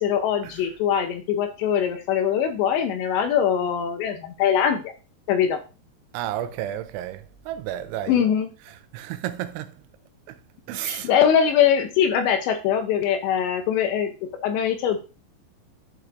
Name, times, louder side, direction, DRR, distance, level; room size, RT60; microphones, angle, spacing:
voice 1, 0.0-4.8 5.3-5.6 8.1-8.5 10.8-15.0, left 8 dB, 80° left, 2.8 m, -22 dB
voice 2, 6.1-8.2 8.7-9.8 10.3-10.4 10.7-11.1, right 12 dB, 85° right, 2.9 m, -32 dB
12.0 x 4.6 x 2.5 m
omnidirectional pair, 5.5 m